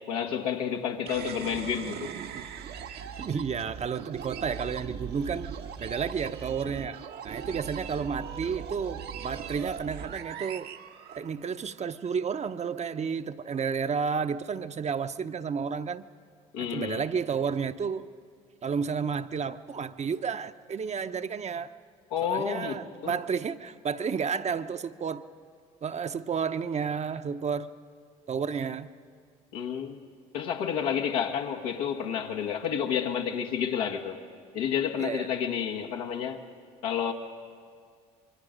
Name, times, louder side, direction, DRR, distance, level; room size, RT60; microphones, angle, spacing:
voice 1, 0.1-2.1 16.5-17.0 22.1-23.2 29.5-30.0 30.3-34.2 34.5-36.4 36.8-37.1, left 8 dB, 85° left, 1.6 m, -30 dB
sound 1, 1.1-11.7, right 8 dB, 60° right, 1.2 m, -40 dB
voice 2, 3.2-5.5 5.8-10.7 11.2-16.1 16.6-18.1 18.6-21.7 22.3-25.2 25.8-27.7 28.3-28.9 35.0-35.3, right 6 dB, 40° right, 0.9 m, -31 dB
26.5 x 23.0 x 5.2 m
hypercardioid pair, 60°, 18 cm